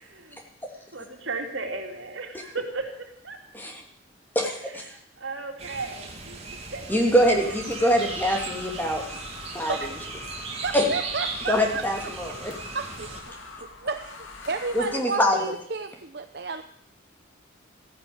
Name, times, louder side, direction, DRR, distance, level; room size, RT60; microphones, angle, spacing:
voice 1, 0.1-0.4 0.9-3.4 4.9-7.1, right 3 dB, 70° right, 4 dB, 2.7 m, -36 dB
voice 2, 4.3-5.0 6.9-9.0 9.5-9.9 10.7-10.9 11.5-12.5 14.7-15.5, equal, 10° left, 1 dB, 2.4 m, -24 dB
sound 1, 5.6-13.2, right 3 dB, 30° right, 2.4 m, -37 dB
sound 2, 7.2-15.0, left 3 dB, 80° left, 2.4 m, -43 dB
voice 3, 10.6-11.8 12.7-13.4 13.8-14.2 14.5-16.6, right 4 dB, 50° right, 7 dB, 0.8 m, -32 dB
14.5 x 10.5 x 8.5 m, 0.64 s
head